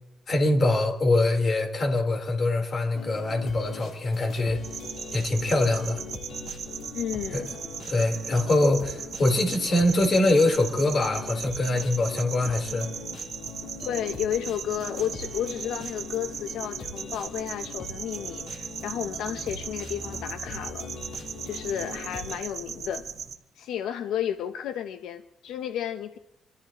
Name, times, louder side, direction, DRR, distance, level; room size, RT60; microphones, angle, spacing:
voice 1, 0.3-4.6 5.1-6.0 7.3-7.4 7.9-12.9, left 2 dB, 45° left, 2 dB, 3.8 m, -23 dB
sound 1, 2.9-22.4, left 4 dB, 65° left, 4.0 m, -41 dB
sound 2, 4.6-23.4, right 7 dB, 55° right, 1.5 m, -38 dB
voice 2, 6.9-7.6 13.8-20.9 21.4-23.1 23.5-26.2, left 10 dB, 85° left, 8 dB, 0.7 m, -32 dB
27.5 x 13.5 x 3.0 m, 0.88 s
cardioid pair, 90°, 0 cm